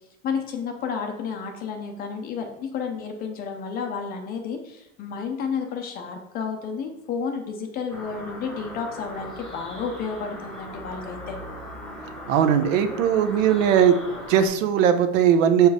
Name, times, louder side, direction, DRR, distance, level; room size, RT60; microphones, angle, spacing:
voice 1, 0.2-11.4, left 6 dB, 20° left, 4 dB, 0.6 m, -31 dB
sound 1, 7.9-14.5, equal, ahead, 1.1 m, -38 dB
voice 2, 12.3-14.0 14.3-15.7, right 8 dB, 70° right, 8 dB, 0.9 m, -19 dB
6.8 x 4.8 x 4.8 m, 0.85 s
supercardioid pair, 165°, 41 cm